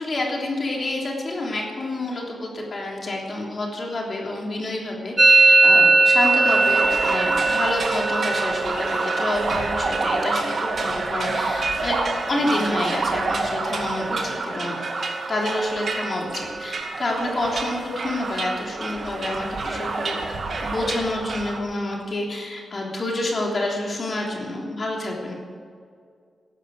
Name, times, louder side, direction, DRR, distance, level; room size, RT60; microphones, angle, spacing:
voice 1, 0.0-12.0 12.3-14.8 15.3-20.2 20.6-25.3, left 2 dB, 45° left, -1 dB, 3.3 m, -28 dB
Musical instrument, 5.2-12.8 13.1-13.7 13.9-14.5 14.8-16.8, right 3 dB, 25° right, 0.4 m, -22 dB
sound 1, 6.2-21.6, right 3 dB, 55° right, 2.2 m, -28 dB
14.5 x 12.0 x 6.4 m, 2.1 s
wide cardioid pair, 125°, 0 cm